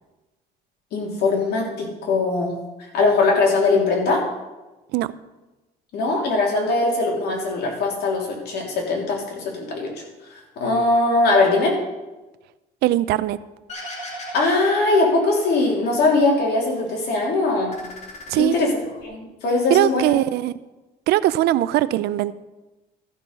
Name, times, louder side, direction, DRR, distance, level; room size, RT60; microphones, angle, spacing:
voice 1, 0.9-2.5 2.9-4.2 5.9-9.9 10.3-11.8 14.3-17.7 18.3-18.7 19.0-20.1, left 3 dB, 70° left, -1 dB, 3.0 m, -21 dB
voice 2, 12.8-13.4 18.3-18.6 19.7-20.6 21.1-22.3, right 14 dB, 75° right, 16 dB, 0.5 m, -20 dB
sound 1, 13.7-16.0 16.4-17.2 17.5-19.0, equal, 40° left, 2.6 m, -37 dB
13.5 x 6.2 x 5.3 m, 1.1 s
cardioid pair, 110°, 17 cm